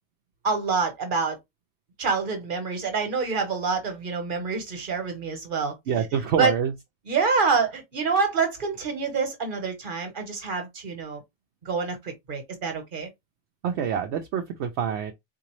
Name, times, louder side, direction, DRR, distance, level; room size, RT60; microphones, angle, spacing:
voice 1, 0.4-1.4 2.0-5.8 6.4-6.5 7.1-11.2 11.6-13.1, right 4 dB, 45° right, 1.2 m, -26 dB
voice 2, 5.9-6.7 13.6-15.1, right 8 dB, 70° right, 0.8 m, -26 dB
3.8 x 2.6 x 3.0 m
omnidirectional pair, 1.2 m